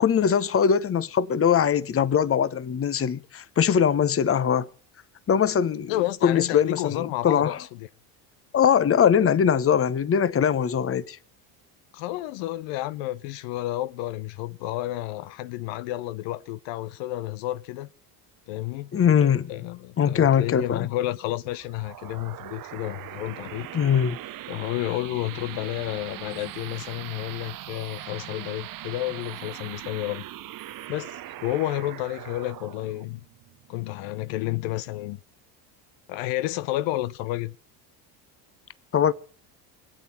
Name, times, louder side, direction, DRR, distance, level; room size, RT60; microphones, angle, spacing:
voice 1, 0.0-4.7 5.3-5.9 6.2-7.6 8.5-11.2 18.9-19.5 20.0-20.9 23.7-24.2 38.9-39.1, left 8 dB, 30° left, 1.0 m, -21 dB
voice 2, 5.9-7.9 11.9-17.9 18.5-18.9 19.5-23.7 24.5-30.3 30.9-33.2 33.7-35.2 36.1-37.6, left 16 dB, 70° left, 0.8 m, -31 dB
sound 1, 21.5-34.6, right 14 dB, 45° right, 0.8 m, -41 dB
25.0 x 8.6 x 5.7 m
supercardioid pair, 80°, 47 cm